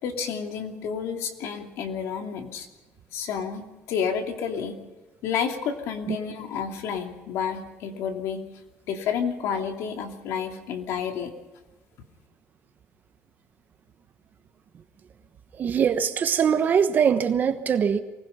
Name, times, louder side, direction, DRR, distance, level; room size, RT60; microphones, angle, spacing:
voice 1, 0.0-2.7 3.1-4.8 5.2-8.4 8.9-11.3, left 7 dB, 80° left, 2.8 m, -30 dB
voice 2, 15.6-18.0, right 7 dB, 40° right, 1.2 m, -22 dB
24.0 x 20.0 x 5.7 m
cardioid pair, 140°, 5 cm